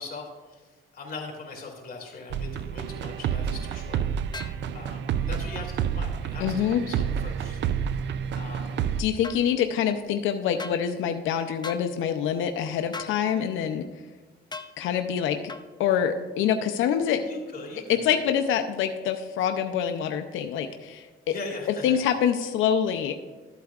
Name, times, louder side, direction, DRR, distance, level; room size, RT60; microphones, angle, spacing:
voice 1, 0.0-4.0 4.7-7.6 8.3-9.0 17.2-18.2 21.3-22.0, left 3 dB, 50° left, 0 dB, 2.6 m, -40 dB
sound 1, 2.3-9.0, right 8 dB, 65° right, 0.4 m, -29 dB
sound 2, 4.3-4.6 9.2-9.4 10.6-10.8 11.6-11.9 12.9-13.2 14.5-14.7 15.5-15.7, left 4 dB, 20° left, 0.6 m, -37 dB
voice 2, 6.4-6.8 9.0-13.9 14.8-15.4 15.8-17.2 17.9-21.3 21.8-23.1, left 8 dB, 85° left, 6 dB, 0.5 m, -25 dB
13.5 x 8.1 x 2.4 m, 1.3 s
cardioid pair, 90°, 20 cm